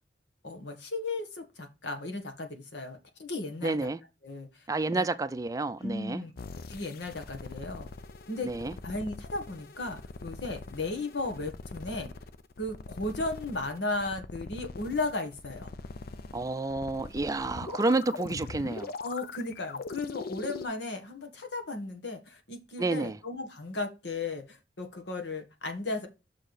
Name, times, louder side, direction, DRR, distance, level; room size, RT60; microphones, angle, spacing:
voice 1, 0.4-3.8 4.2-4.6 4.9-5.0 5.8-6.3 6.7-7.9 8.3-8.5 8.8-12.1 12.6-15.7 19.0-26.1, left 2 dB, 80° left, 1.7 m, -35 dB
voice 2, 3.6-4.0 4.7-6.2 8.4-8.7 16.3-18.9 22.8-23.2, right 3 dB, 20° right, 0.4 m, -30 dB
sound 1, 6.4-20.7, left 3 dB, 60° left, 0.5 m, -42 dB
6.2 x 4.5 x 4.8 m
head